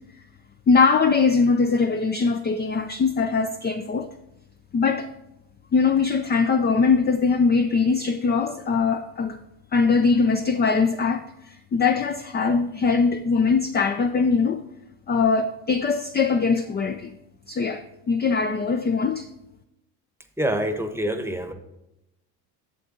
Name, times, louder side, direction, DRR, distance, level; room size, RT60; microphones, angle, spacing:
voice 1, 0.7-4.1 4.7-5.1 5.7-9.4 9.7-14.6 15.1-17.1 17.5-19.3, left 4 dB, 25° left, 7 dB, 0.4 m, -21 dB
voice 2, 20.4-21.5, right 1 dB, 5° right, 7 dB, 0.9 m, -26 dB
8.4 x 6.8 x 3.8 m, 0.87 s
supercardioid pair, 75°, 48 cm